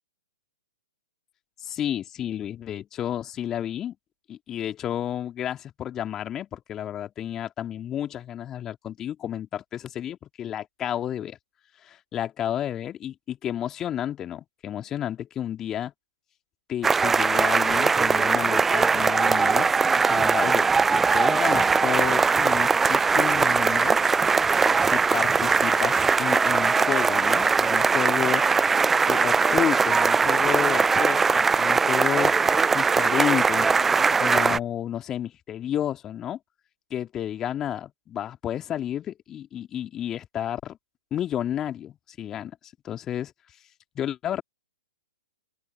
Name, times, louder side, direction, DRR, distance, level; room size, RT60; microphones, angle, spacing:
voice 1, 1.6-3.9 4.3-11.4 11.8-15.9 16.7-19.7 20.1-24.0 24.8-28.4 29.1-32.4 32.7-36.4 36.9-40.8 41.1-42.5 42.8-43.3 43.9-44.4, left 10 dB, 20° left, 2.6 m, -31 dB
sound 1, 16.8-34.6, right 5 dB, 10° right, 0.5 m, -21 dB
open air
figure-of-eight pair, 115°, 2 cm